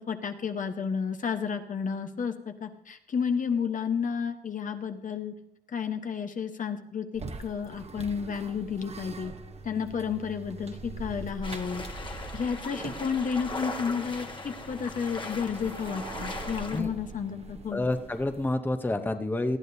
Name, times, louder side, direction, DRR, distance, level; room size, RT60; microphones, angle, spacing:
voice 1, 0.1-5.3 5.7-9.3 9.6-11.8 12.3-17.9, left 6 dB, 55° left, 7 dB, 1.0 m, -31 dB
sound 1, 7.1-18.6, right 3 dB, 40° right, 1.0 m, -43 dB
sound 2, 11.4-16.8, left 3 dB, 30° left, 1.4 m, -39 dB
voice 2, 17.7-19.6, left 2 dB, 10° left, 7 dB, 0.8 m, -28 dB
19.0 x 13.0 x 2.7 m, 0.78 s
cardioid pair, 105°, 16 cm